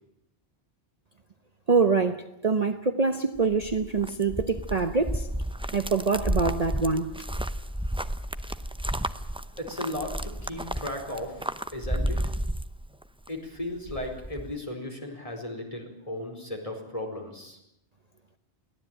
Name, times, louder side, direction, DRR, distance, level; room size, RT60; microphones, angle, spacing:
voice 1, 1.7-5.3 5.7-7.1, right 4 dB, 40° right, 7 dB, 1.0 m, -25 dB
sound 1, 3.4-13.3 13.6-14.5, equal, 5° right, 0.6 m, -32 dB
voice 2, 9.6-12.2 13.3-17.6, left 1 dB, 30° left, 1 dB, 4.7 m, -36 dB
23.0 x 17.5 x 9.1 m, 0.83 s
omnidirectional pair, 1.1 m